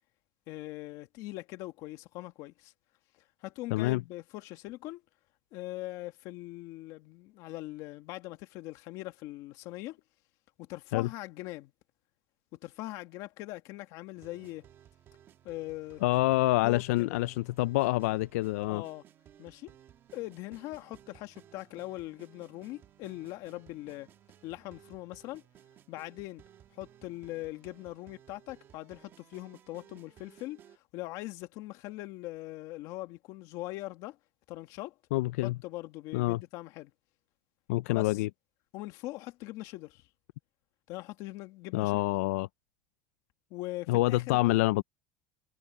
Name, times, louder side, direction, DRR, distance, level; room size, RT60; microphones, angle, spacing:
voice 1, 0.5-2.7 3.4-5.0 5.5-10.0 10.6-11.7 12.5-14.7 15.4-16.0 16.6-17.2 18.7-19.0 19.4-19.7 20.1-24.1 24.4-25.4 25.9-26.4 26.7-34.2 34.5-34.9 35.4-36.9 37.9-38.2 38.7-40.0 40.9-42.0 43.5-44.6, left 18 dB, 50° left, 1.9 m, -41 dB
voice 2, 3.7-4.0 10.9-11.1 16.0-18.8 35.1-35.5 36.1-36.4 37.7-38.3 41.7-42.5 43.9-44.8, left 19 dB, 85° left, 0.4 m, -27 dB
sound 1, 14.2-30.8, right 10 dB, 30° right, 1.5 m, -58 dB
supercardioid pair, 160°, 8 cm